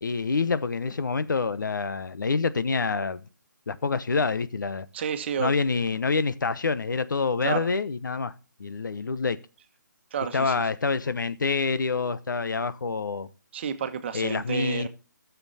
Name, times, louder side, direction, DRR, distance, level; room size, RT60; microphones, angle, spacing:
voice 1, 0.0-3.2 3.7-4.9 5.4-8.3 8.6-9.4 10.3-13.3 14.1-14.9, left 4 dB, 75° left, 1.0 m, -27 dB
voice 2, 4.9-5.5 7.4-7.7 10.1-10.7 13.5-14.9, right 7 dB, 35° right, 1.3 m, -30 dB
12.5 x 7.0 x 4.1 m
hypercardioid pair, 155°, 10 cm